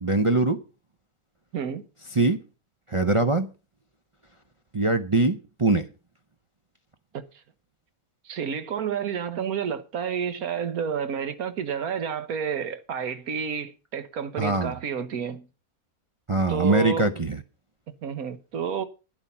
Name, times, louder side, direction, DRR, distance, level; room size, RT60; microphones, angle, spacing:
voice 1, 0.0-0.6 2.1-2.4 2.9-3.5 4.7-5.9 14.4-14.7 16.3-17.4, right 3 dB, 35° right, 0.5 m, -22 dB
voice 2, 8.2-15.5 16.5-17.1 18.0-18.8, right 7 dB, 70° right, 1.6 m, -30 dB
11.5 x 9.7 x 5.6 m
omnidirectional pair, 1.6 m